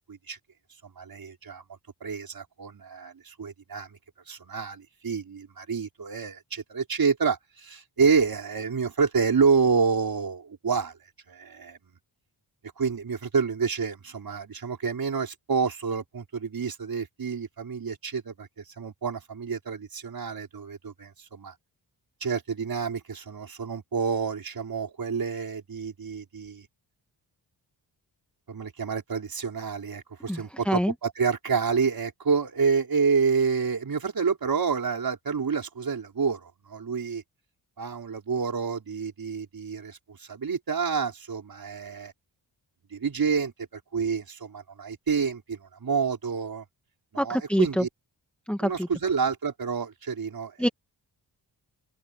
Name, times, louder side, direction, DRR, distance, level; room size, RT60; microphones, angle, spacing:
voice 1, 0.8-1.6 2.0-4.0 4.3-11.0 11.3-11.8 12.8-21.5 22.2-26.7 28.5-37.2 37.8-42.1 42.9-46.6 47.1-47.9 48.6-50.5, right 5 dB, 55° right, 5.2 m, -28 dB
voice 2, 30.3-30.9 47.2-47.9 48.5-48.9 50.6-50.7, equal, 5° left, 1.7 m, -25 dB
wide cardioid pair, 115°, 43 cm